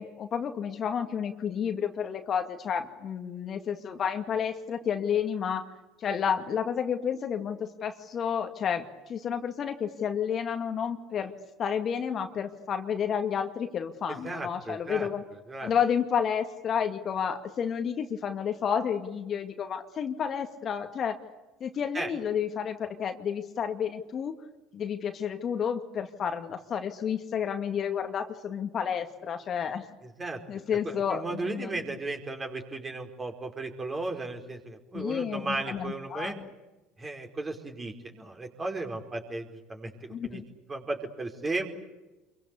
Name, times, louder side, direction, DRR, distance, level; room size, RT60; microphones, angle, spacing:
voice 1, 0.0-5.7 6.0-11.3 11.6-15.2 15.6-21.2 21.6-24.4 24.7-29.9 30.5-31.8 34.9-36.5 40.1-40.4, left 7 dB, 45° left, 6 dB, 2.1 m, -31 dB
voice 2, 14.1-15.7 21.9-22.1 30.2-30.4 30.8-36.4 37.0-40.4 40.7-41.7, right 2 dB, 25° right, 3 dB, 5.0 m, -35 dB
27.5 x 23.5 x 8.5 m, 1.1 s
hypercardioid pair, 70°, 0 cm